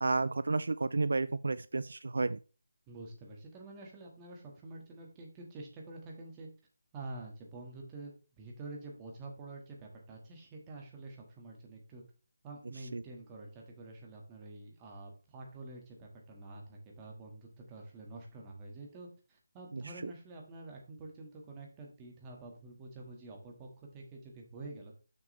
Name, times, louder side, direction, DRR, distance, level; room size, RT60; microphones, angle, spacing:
voice 1, 0.0-2.4 12.9-13.0 19.7-20.1, right 3 dB, 75° right, 16 dB, 0.3 m, -32 dB
voice 2, 2.9-6.5 6.9-12.0 12.4-25.0, right 2 dB, 20° right, 0 dB, 1.8 m, -48 dB
6.9 x 6.6 x 3.3 m, 0.35 s
figure-of-eight pair, 160°, 0 cm